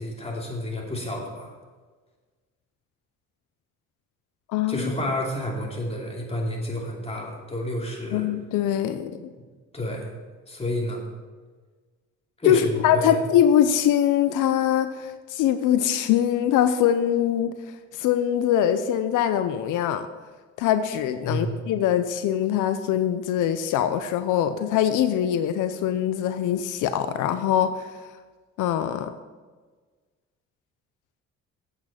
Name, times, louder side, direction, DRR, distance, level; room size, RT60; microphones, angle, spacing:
voice 1, 0.0-1.5 4.7-8.3 9.7-10.1 10.5-11.0 12.4-13.2 21.2-21.6, left 1 dB, 20° left, -1 dB, 2.8 m, -30 dB
voice 2, 4.5-4.9 8.1-9.3 12.5-17.5 17.9-20.1 20.6-27.9 28.6-29.1, left 10 dB, 90° left, 10 dB, 0.6 m, -23 dB
8.6 x 8.1 x 5.7 m, 1.4 s
cardioid pair, 90°, 30 cm